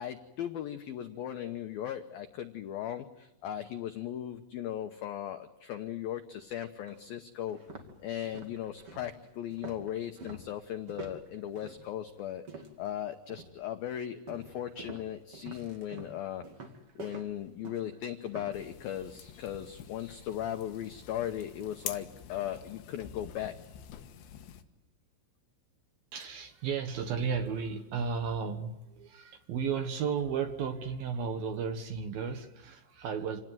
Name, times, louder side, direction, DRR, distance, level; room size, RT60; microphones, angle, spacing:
voice 1, 0.0-7.6 8.0-16.4 17.0-23.6, left 11 dB, 85° left, 7 dB, 2.1 m, -37 dB
sound 1, 6.3-6.4 6.9-7.0 7.4-12.9 13.3-13.7 14.3-18.6, right 3 dB, 40° right, 2.5 m, -48 dB
sound 2, 18.5-24.6, left 10 dB, 70° left, 3.6 m, -46 dB
voice 2, 26.1-33.4, right 6 dB, 60° right, 7 dB, 2.7 m, -34 dB
28.0 x 18.5 x 9.2 m, 1.0 s
omnidirectional pair, 5.7 m